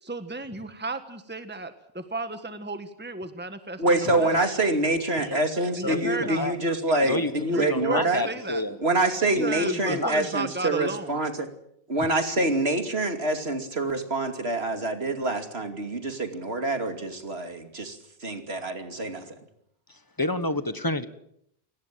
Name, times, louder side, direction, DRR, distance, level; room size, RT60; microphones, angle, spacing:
voice 1, 0.0-4.4 5.8-6.5 7.5-8.6 9.4-11.2, right 3 dB, 10° right, 9 dB, 1.5 m, -34 dB
voice 2, 3.8-8.2 8.8-11.5 11.9-19.3, right 2 dB, 80° right, 6 dB, 3.0 m, -26 dB
voice 3, 5.8-6.6 7.0-8.8 9.3-10.1 19.9-21.1, left 2 dB, 20° left, 12 dB, 1.4 m, -30 dB
28.5 x 18.5 x 7.6 m, 0.73 s
omnidirectional pair, 1.0 m